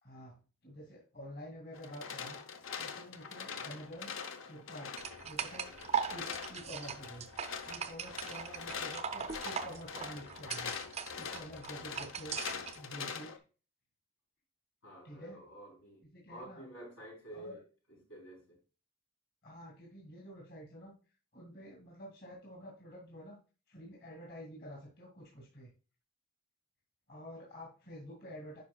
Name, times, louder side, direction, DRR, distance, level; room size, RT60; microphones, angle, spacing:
voice 1, 0.0-2.4 2.8-4.1 4.5-5.0 5.2-5.7 6.1-7.3 7.7-10.7 11.1-12.4 12.7-13.3 15.0-15.4 16.1-16.6 17.3-17.6 19.4-20.9 21.3-23.4 23.7-25.7 27.1-28.6, equal, 50° left, 2.2 m, -49 dB
sound 1, 1.7-13.4, left 6 dB, 70° left, 0.8 m, -43 dB
sound 2, 5.0-12.8, right 7 dB, 30° right, 0.4 m, -40 dB
voice 2, 14.8-17.6 17.9-18.6, right 1 dB, 85° left, 4.1 m, -50 dB
9.4 x 5.3 x 2.3 m
head